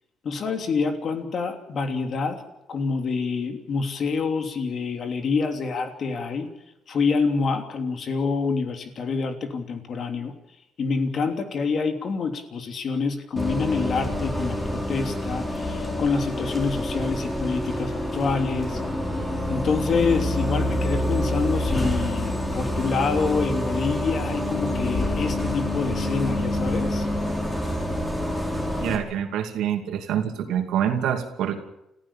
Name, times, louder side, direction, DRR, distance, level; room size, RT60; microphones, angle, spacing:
voice 1, 0.2-2.4 2.7-6.5 6.9-10.3 10.8-18.8 19.5-27.1, left 4 dB, 55° left, 6 dB, 3.1 m, -27 dB
Bus, 13.4-29.0, left 1 dB, 15° left, 5.9 m, -27 dB
voice 2, 28.8-31.6, right 9 dB, 85° right, 5 dB, 2.6 m, -26 dB
29.0 x 15.0 x 7.3 m, 0.86 s
cardioid pair, 85°, 0 cm